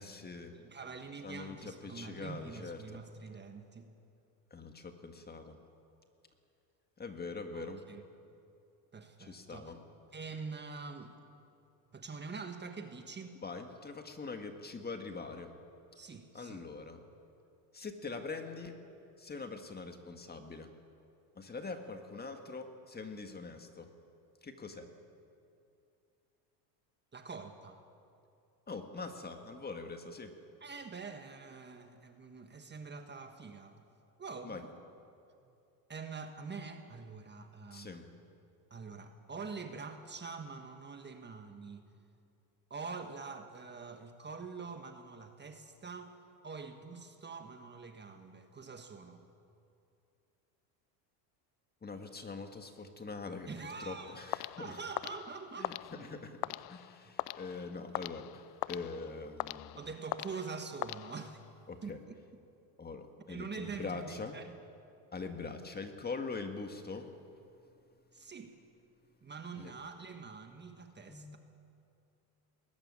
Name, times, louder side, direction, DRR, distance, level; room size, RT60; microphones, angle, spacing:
voice 1, 0.0-0.5 1.2-2.8 4.5-5.6 7.0-7.8 9.2-9.8 13.4-15.6 16.3-17.0 17.7-18.8 19.2-20.7 21.4-23.9 24.4-24.9 28.7-30.3 34.4-34.6 37.7-38.1 51.8-53.5 53.8-54.8 55.6-59.8 61.7-62.0 62.8-64.4 65.1-67.1 69.6-69.7 71.1-71.4, left 4 dB, 20° left, 6 dB, 1.8 m, -43 dB
voice 2, 0.5-3.9 7.5-8.0 8.9-9.7 10.1-11.2 11.9-13.4 15.9-16.6 27.1-27.8 30.6-33.9 34.2-34.7 35.9-37.9 38.7-41.9 42.7-46.1 46.4-49.2 53.5-54.3 54.6-56.6 57.0-57.1 59.7-61.4 61.8-62.1 63.3-64.6 68.1-68.6 69.2-71.4, right 4 dB, 20° right, 6 dB, 1.4 m, -45 dB
sound 1, 54.3-61.6, left 20 dB, 65° left, 0.6 m, -42 dB
20.0 x 14.5 x 9.8 m, 2.6 s
supercardioid pair, 105°, 49 cm